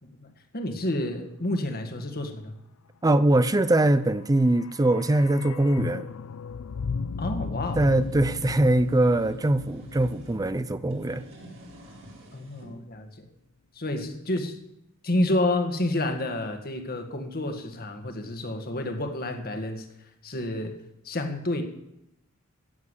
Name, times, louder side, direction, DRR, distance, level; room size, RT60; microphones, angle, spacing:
voice 1, 0.0-2.5 7.2-7.8 12.3-13.1 13.7-14.5 15.0-19.9 20.2-20.7 21.0-21.6, left 1 dB, 45° left, 1.8 m, -29 dB
voice 2, 3.0-6.1 7.8-11.2, right 1 dB, 15° right, 0.5 m, -22 dB
sound 1, 4.1-12.2 12.5-12.6, left 5 dB, 70° left, 0.5 m, -36 dB
sound 2, 7.4-10.4 10.8-12.7, right 1 dB, 60° right, 3.7 m, -48 dB
15.5 x 7.2 x 8.3 m
head